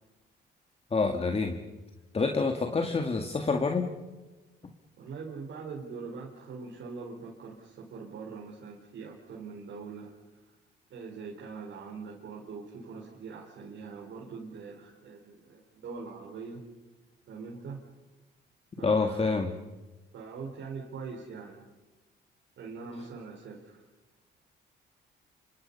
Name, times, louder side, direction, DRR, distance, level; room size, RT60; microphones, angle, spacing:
voice 1, 0.9-1.6 2.1-3.9 18.8-19.5, left 4 dB, 30° left, 4 dB, 2.1 m, -27 dB
voice 2, 5.0-10.2 10.9-16.6 17.3-17.8 18.8-19.4 20.1-21.6 22.6-23.8, right 5 dB, 70° right, -3 dB, 4.7 m, -42 dB
27.5 x 25.5 x 5.6 m, 1.2 s
cardioid pair, 90°, 20 cm